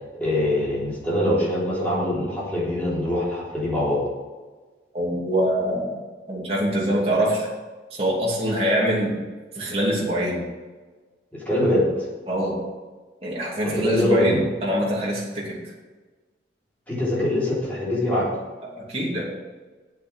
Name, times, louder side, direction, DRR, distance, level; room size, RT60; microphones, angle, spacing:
voice 1, 0.1-4.0 11.3-12.1 13.6-14.4 16.9-18.3, left 1 dB, 10° left, -7 dB, 3.8 m, -23 dB
voice 2, 4.9-7.5 8.0-9.2 9.5-10.5 12.3-12.6 13.2-15.6 18.6-19.2, equal, 35° right, -5 dB, 2.7 m, -24 dB
8.5 x 8.4 x 6.5 m, 1.3 s
head